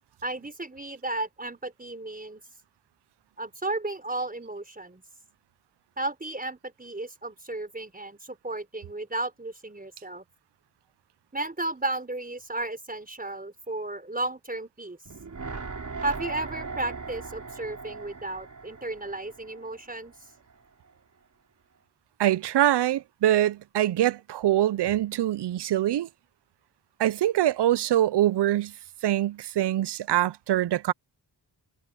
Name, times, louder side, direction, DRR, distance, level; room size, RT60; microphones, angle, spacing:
voice 1, 0.2-2.4 3.4-5.0 6.0-10.2 11.3-15.0 16.0-20.1, right 2 dB, 20° right, 5.1 m, -34 dB
sound 1, 15.0-20.2 20.5-20.6, right 4 dB, 45° right, 5.3 m, -39 dB
voice 2, 22.2-26.1 27.0-28.7 29.0-30.9, right 12 dB, 70° right, 0.5 m, -24 dB
wide cardioid pair, 140°, 42 cm